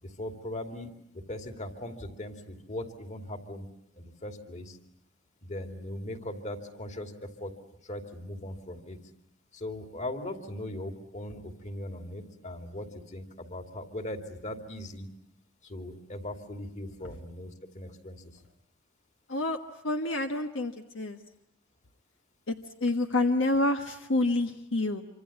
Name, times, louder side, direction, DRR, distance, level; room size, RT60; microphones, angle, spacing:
voice 1, 0.0-3.7 3.9-4.8 5.4-7.5 7.8-9.0 9.5-15.1 15.6-18.2 24.2-24.3, left 1 dB, 40° left, 6 dB, 2.8 m, -39 dB
voice 2, 19.8-21.2 22.5-25.0, left 2 dB, 75° left, 5 dB, 1.4 m, -28 dB
26.5 x 26.0 x 8.6 m, 0.75 s
head